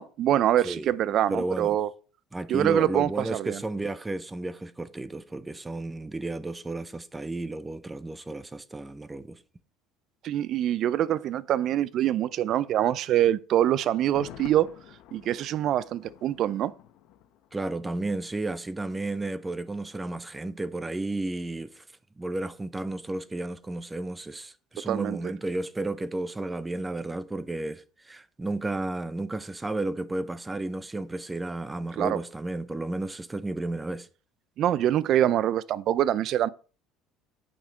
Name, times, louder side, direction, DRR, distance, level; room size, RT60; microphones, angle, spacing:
voice 1, 0.0-1.9 2.5-3.6 10.2-14.7 15.1-16.7 24.8-25.2 32.0-32.2 34.6-36.5, right 11 dB, 55° right, 0.5 m, -25 dB
voice 2, 1.3-1.8 2.3-9.4 17.5-21.8 22.2-34.1, right 2 dB, 15° right, 0.7 m, -33 dB
Thunder, 14.0-17.9 18.2-18.3, left 11 dB, 70° left, 1.0 m, -48 dB
8.7 x 5.8 x 4.5 m
supercardioid pair, 90°, 0 cm